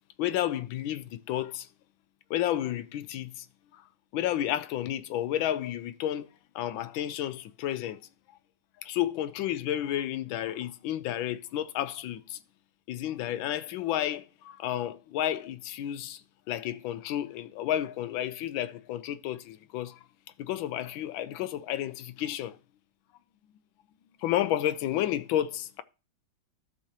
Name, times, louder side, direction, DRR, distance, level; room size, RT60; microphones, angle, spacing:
voice 1, 0.2-1.7 2.3-3.5 3.7-3.8 4.1-6.3 6.5-8.0 8.8-12.4 12.9-16.2 16.5-20.0 20.4-22.6 24.2-25.8, left 12 dB, 80° left, 1.3 m, -31 dB
14.0 x 5.7 x 2.9 m
omnidirectional pair, 2.2 m